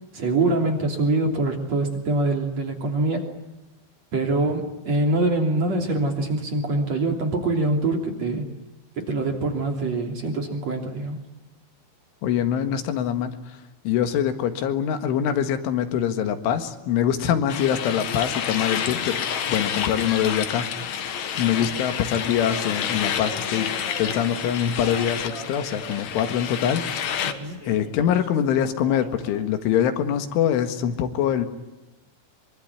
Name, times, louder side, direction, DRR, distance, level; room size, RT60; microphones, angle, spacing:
voice 1, 0.1-3.3 4.1-8.5 9.0-11.2 27.2-27.6, right 2 dB, 40° right, 3 dB, 3.7 m, -24 dB
voice 2, 12.2-13.6 13.9-19.2 19.5-20.8 21.4-23.7 24.0-27.3 27.7-31.5, left 9 dB, 85° left, 9 dB, 4.2 m, -24 dB
sound 1, 17.5-27.3, left 8 dB, 60° left, 1.9 m, -29 dB
sound 2, 23.2-26.7 27.3-29.5, left 1 dB, 20° left, 3.7 m, -41 dB
24.5 x 24.5 x 9.7 m, 1.1 s
omnidirectional pair, 5.5 m